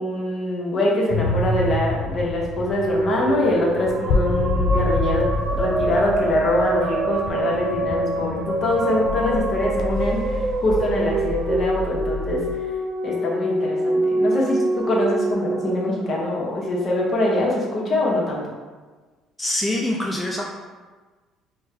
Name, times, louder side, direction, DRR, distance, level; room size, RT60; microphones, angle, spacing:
voice 1, 0.0-12.7 13.0-18.5, left 1 dB, 50° left, -3 dB, 1.0 m, -24 dB
sound 1, 1.1-12.5, left 3 dB, 65° left, 0.4 m, -28 dB
sound 2, 2.4-16.9, right 2 dB, 45° right, 0.4 m, -26 dB
voice 2, 19.4-20.5, left 1 dB, 15° left, -2 dB, 0.5 m, -24 dB
4.4 x 2.2 x 3.3 m, 1.3 s
supercardioid pair, 75°, 0 cm